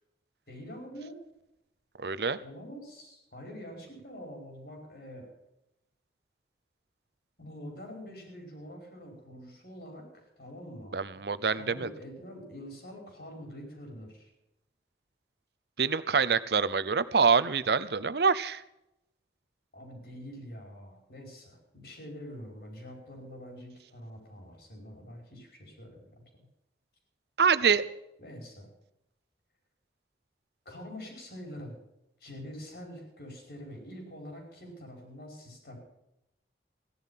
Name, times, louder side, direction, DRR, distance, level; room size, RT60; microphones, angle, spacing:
voice 1, 0.5-1.2 2.4-5.3 7.4-11.2 11.5-14.3 19.7-26.2 27.6-27.7 28.2-28.7 30.7-31.8 32.2-35.8, equal, 60° left, 2 dB, 5.2 m, -45 dB
voice 2, 2.0-2.4 10.9-11.9 15.8-18.6 27.4-27.8, right 5 dB, 70° right, 15 dB, 0.7 m, -25 dB
16.0 x 11.0 x 5.8 m, 0.85 s
head